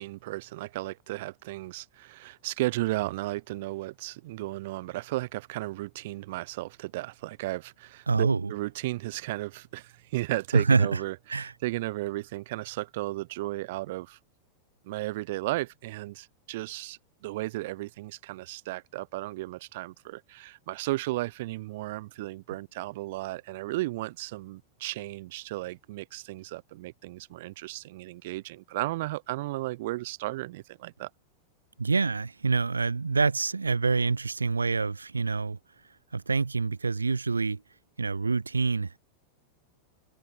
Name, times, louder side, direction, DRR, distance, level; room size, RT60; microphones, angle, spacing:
voice 1, 0.0-14.2 14.8-31.1, right 19 dB, 50° right, 0.8 m, -34 dB
voice 2, 8.1-8.5 10.5-11.0 11.3-11.5 31.8-35.6 36.1-37.6 38.0-39.0, right 4 dB, 75° right, 1.9 m, -26 dB
figure-of-eight pair, 90°, 0 cm